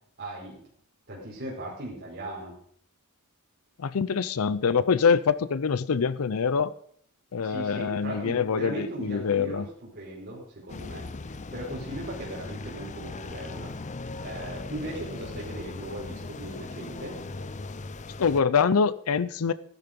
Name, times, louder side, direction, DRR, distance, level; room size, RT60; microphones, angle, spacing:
voice 1, 0.2-0.6 1.1-2.6 7.4-13.7 14.2-17.2, right 1 dB, 50° right, 4.7 m, -38 dB
voice 2, 3.8-6.7 7.3-9.7 18.2-19.5, left 6 dB, 75° left, 0.5 m, -25 dB
sound 1, 10.7-18.4, left 3 dB, 35° left, 0.6 m, -39 dB
14.5 x 11.5 x 5.2 m
head